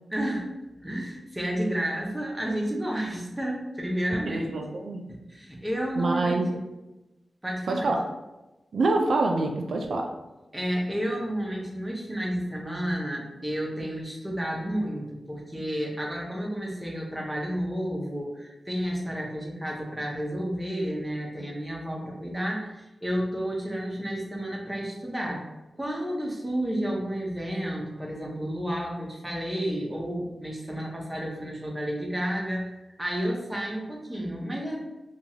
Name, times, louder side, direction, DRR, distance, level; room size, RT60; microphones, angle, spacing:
voice 1, 0.1-0.5 0.7-4.6 5.3-6.6 7.4-7.9 10.5-25.4 25.8-32.7 33.0-34.8, equal, 10° right, -2 dB, 0.6 m, -31 dB
voice 2, 4.3-5.1 6.0-6.5 7.7-8.0 8.7-10.1, right 2 dB, 75° right, 2 dB, 0.3 m, -26 dB
2.9 x 2.3 x 2.7 m, 1.0 s
wide cardioid pair, 110°, 0 cm